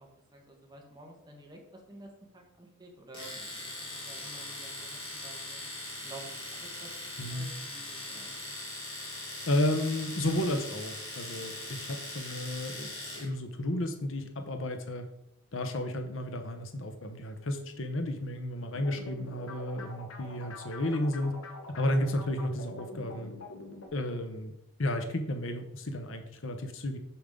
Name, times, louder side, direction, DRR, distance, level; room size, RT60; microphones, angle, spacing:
voice 1, 0.0-5.6 6.0-8.5, right 2 dB, 20° right, 1 dB, 1.5 m, -51 dB
Domestic sounds home sounds, 3.1-13.3, left 2 dB, 25° left, 2.8 m, -41 dB
voice 2, 7.2-7.5 9.5-15.1 15.5-21.3 21.8-23.3 23.9-24.5 24.8-27.0, left 1 dB, 70° left, 6 dB, 1.0 m, -32 dB
sound 1, 18.7-23.9, left 2 dB, 90° left, 1.2 m, -45 dB
7.1 x 6.6 x 3.8 m, 0.82 s
head